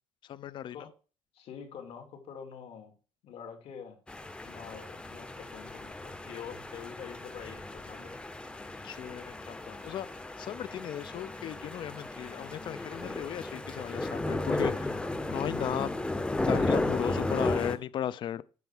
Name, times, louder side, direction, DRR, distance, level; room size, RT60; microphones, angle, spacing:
voice 1, 0.3-0.8 8.8-10.1 10.4-14.9 15.3-15.9 16.5-18.4, left 10 dB, 50° left, 0.5 m, -36 dB
voice 2, 1.3-2.9 3.2-4.0 4.4-8.2, left 7 dB, 65° left, 2.6 m, -46 dB
sound 1, 4.1-17.8, left 2 dB, 10° left, 0.7 m, -34 dB
9.4 x 4.4 x 7.2 m
cardioid pair, 150°, 11 cm